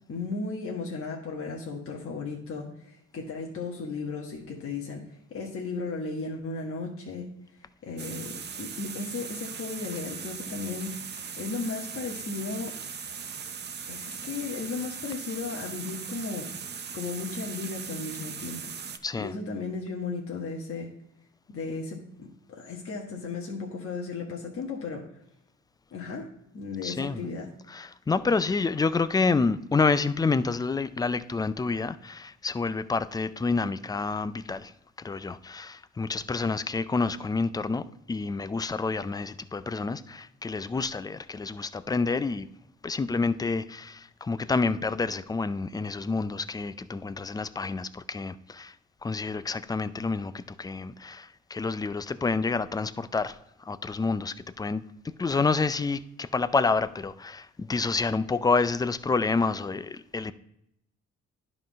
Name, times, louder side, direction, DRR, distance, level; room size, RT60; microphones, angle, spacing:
voice 1, 0.1-5.0 5.3-7.3 7.8-12.8 13.9-16.5 16.9-18.7 19.2-20.9 21.5-25.1 25.9-26.3 26.5-27.5, left 4 dB, 45° left, 1.3 m, -35 dB
sound 1, 8.0-19.0, right 6 dB, 35° right, 0.6 m, -39 dB
voice 2, 19.0-19.3 26.8-27.2 27.7-34.7 35.0-42.5 42.8-48.7 49.0-60.3, left 4 dB, 15° left, 0.3 m, -28 dB
10.5 x 3.9 x 5.1 m
cardioid pair, 90°, 30 cm